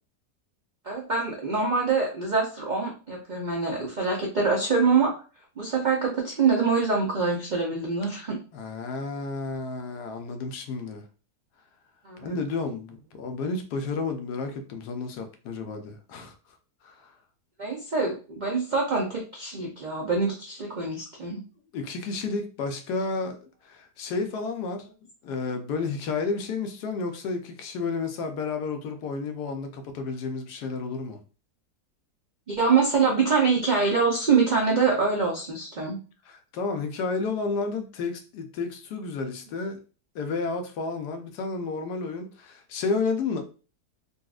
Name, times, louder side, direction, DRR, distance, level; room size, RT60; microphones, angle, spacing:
voice 1, 0.9-5.1 5.6-8.4 12.0-12.3 17.6-21.4 32.5-36.0, right 4 dB, 85° right, 0.4 m, -25 dB
voice 2, 8.5-11.0 12.2-16.3 16.8-17.1 21.7-24.9 25.2-31.2 36.3-39.8 40.1-43.4, left 4 dB, 80° left, 1.2 m, -31 dB
4.0 x 2.3 x 2.3 m
omnidirectional pair, 1.7 m